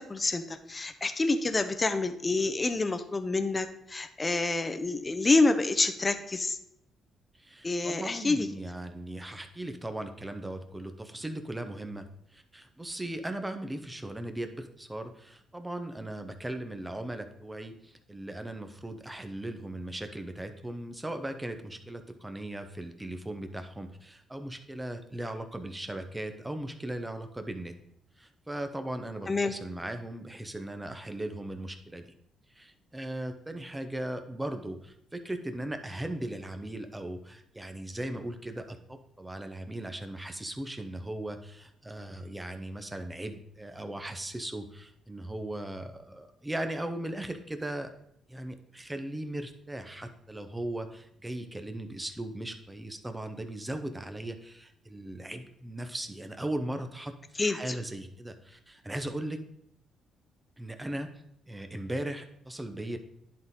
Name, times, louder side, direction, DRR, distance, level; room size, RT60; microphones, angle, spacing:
voice 1, 0.0-6.6 7.6-8.5 29.3-29.5 57.4-57.7, left 3 dB, 25° left, 9 dB, 0.7 m, -27 dB
voice 2, 7.4-27.8 28.2-32.1 32.5-47.9 48.3-59.4 60.6-63.0, right 1 dB, 10° right, 7 dB, 0.9 m, -38 dB
10.5 x 4.0 x 3.7 m, 0.74 s
cardioid pair, 90°, 0 cm